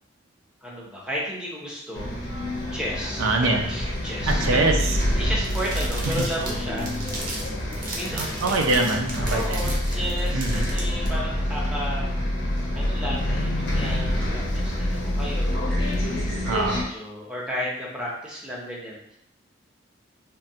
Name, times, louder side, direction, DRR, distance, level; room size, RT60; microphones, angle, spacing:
voice 1, 0.6-2.2 2.7-3.3 3.7-7.3 7.7-8.2 9.3-12.1 12.7-16.5 16.7-19.2, equal, 5° right, -5 dB, 0.5 m, -34 dB
Bus, 1.9-16.8, left 1 dB, 60° left, 0.6 m, -27 dB
voice 2, 3.2-3.6 4.3-4.8 6.0-6.1 8.1-9.7 10.3-10.7 16.4-16.9, right 2 dB, 90° right, 2 dB, 0.5 m, -24 dB
sound 1, 5.4-11.1, right 2 dB, 45° right, 0.6 m, -36 dB
3.2 x 2.2 x 2.7 m, 0.74 s
head